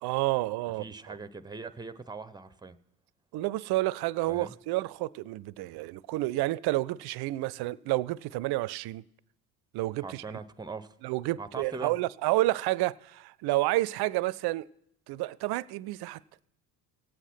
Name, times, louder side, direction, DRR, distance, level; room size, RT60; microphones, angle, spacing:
voice 1, 0.0-1.1 3.3-9.0 9.7-10.2 11.0-14.7 15.1-16.2, right 18 dB, 55° right, 0.5 m, -30 dB
voice 2, 0.8-2.8 4.3-4.5 10.0-10.9 11.4-11.9, right 4 dB, 10° right, 0.8 m, -41 dB
17.5 x 8.1 x 5.9 m
hypercardioid pair, 60°, 48 cm